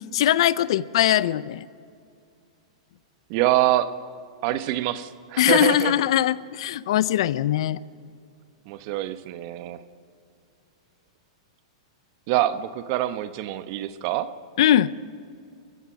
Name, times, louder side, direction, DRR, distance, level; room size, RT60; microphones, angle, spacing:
voice 1, 0.1-1.7 5.4-7.8 14.6-14.9, left 12 dB, 65° left, 18 dB, 0.6 m, -21 dB
voice 2, 3.3-3.9 4.4-5.9 8.7-9.8 12.3-14.3, right 14 dB, 50° right, 12 dB, 1.1 m, -25 dB
28.5 x 15.0 x 6.2 m, 2.3 s
hypercardioid pair, 120°, 3 cm